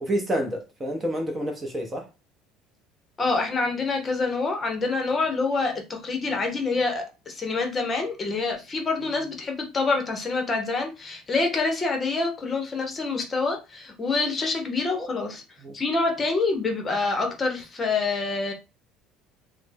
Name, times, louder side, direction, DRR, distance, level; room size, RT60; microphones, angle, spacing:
voice 1, 0.0-2.1 14.9-15.1 15.6-15.8, equal, 15° right, 0.6 m, -29 dB
voice 2, 3.2-15.4 15.7-18.5, left 3 dB, 25° left, 0.8 m, -26 dB
3.2 x 2.0 x 3.3 m
cardioid pair, 135°, 0 cm